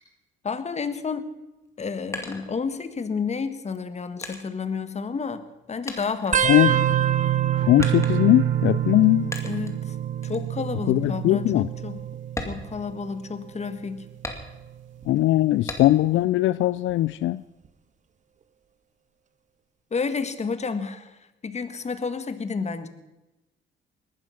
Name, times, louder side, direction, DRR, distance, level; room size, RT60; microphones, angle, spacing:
voice 1, 0.4-1.3 1.8-5.4 5.7-6.8 9.4-10.0 10.2-12.0 12.4-14.1 19.9-22.9, left 5 dB, 35° left, 10 dB, 1.5 m, -30 dB
sound 1, 1.6-3.1 3.7-5.6 5.9-7.0 7.8-8.5 9.3-9.8 10.2-10.5 10.9-11.0 11.5-11.6 12.2-13.4 14.2-14.9 15.7-16.2 16.6-17.5, left 2 dB, 15° left, 2.4 m, -38 dB
sound 2, 6.3-9.5 9.8-10.4 11.4-12.9 13.5-13.8 15.0-15.4 16.9-17.0, right 8 dB, 40° right, 0.7 m, -29 dB
sound 3, 6.7-13.5 13.8-14.4 14.7-14.8, right 12 dB, 75° right, 0.6 m, -27 dB
voice 2, 7.7-9.3 10.9-11.7 15.1-17.4, left 15 dB, 75° left, 17 dB, 0.4 m, -20 dB
19.0 x 12.0 x 5.7 m, 1.0 s
cardioid pair, 90°, 20 cm